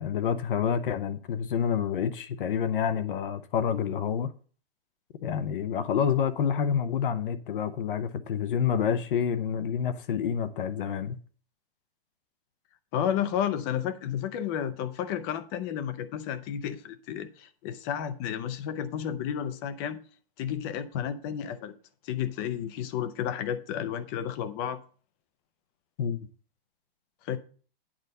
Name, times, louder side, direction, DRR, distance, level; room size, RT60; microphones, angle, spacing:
voice 1, 0.0-4.3 5.2-11.2 26.0-26.2, left 7 dB, 60° left, 0.8 m, -28 dB
voice 2, 12.9-20.0 20.4-21.7 22.0-24.8 27.2-27.4, left 9 dB, 25° left, 0.5 m, -32 dB
8.9 x 4.1 x 6.5 m
hypercardioid pair, 155°, 30 cm